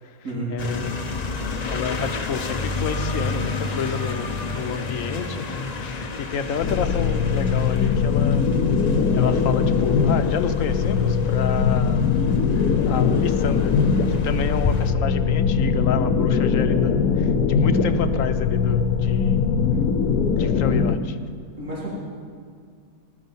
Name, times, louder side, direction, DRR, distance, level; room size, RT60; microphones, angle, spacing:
voice 1, 0.5-1.0 1.7-8.4 9.1-12.1 12.9-13.8 14.1-19.4 20.4-21.2, left 7 dB, 65° left, 10 dB, 1.1 m, -30 dB
sound 1, 0.6-14.9, left 3 dB, 35° left, 0.7 m, -31 dB
sound 2, 6.6-21.0, left 5 dB, 90° left, 1.3 m, -21 dB
voice 2, 17.7-18.0 21.6-22.0, right 1 dB, 60° right, -7 dB, 4.1 m, -31 dB
19.0 x 13.0 x 5.5 m, 2.1 s
omnidirectional pair, 1.6 m